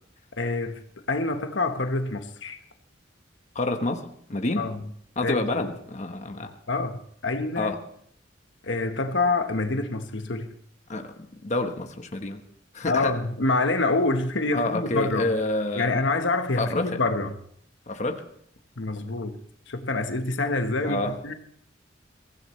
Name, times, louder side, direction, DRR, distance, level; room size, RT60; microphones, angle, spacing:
voice 1, 0.4-0.8 1.1-2.6 4.6-4.8 5.2-5.7 6.7-7.7 8.6-10.5 12.9-15.3 15.8-17.4 18.8-19.4 19.7-21.3, left 3 dB, 75° left, 7 dB, 1.3 m, -26 dB
voice 2, 3.5-4.7 5.2-6.5 7.6-7.8 10.9-12.4 12.7-13.1 14.5-15.9 16.6-17.0 17.9-18.2 20.8-21.1, left 2 dB, 40° left, 5 dB, 1.2 m, -28 dB
23.0 x 15.5 x 3.2 m, 0.64 s
head